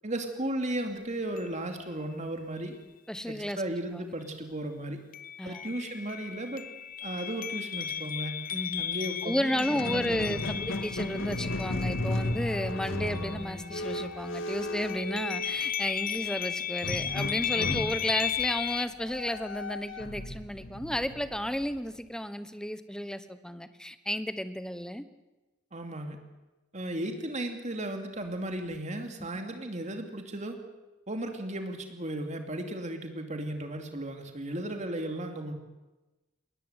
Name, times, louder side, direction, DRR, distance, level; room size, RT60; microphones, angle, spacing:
voice 1, 0.0-2.8 3.3-5.0 5.4-6.7 7.0-8.4 8.8-10.6 17.5-17.8 25.7-26.2 26.7-30.6 31.1-35.5, right 1 dB, 40° right, 5 dB, 2.7 m, -35 dB
sound 1, 0.6-0.7 1.4-1.9 5.1-14.3 14.6-18.9, left 9 dB, 45° left, 0.8 m, -35 dB
voice 2, 3.1-3.6 3.9-4.1 5.4-5.6 8.5-8.8 9.2-25.0 29.2-29.3, equal, 5° left, 12 dB, 1.1 m, -33 dB
Squeak, 9.5-15.9 16.8-22.0, left 1 dB, 85° left, 2.1 m, -35 dB
20.5 x 19.5 x 8.2 m, 1.1 s
head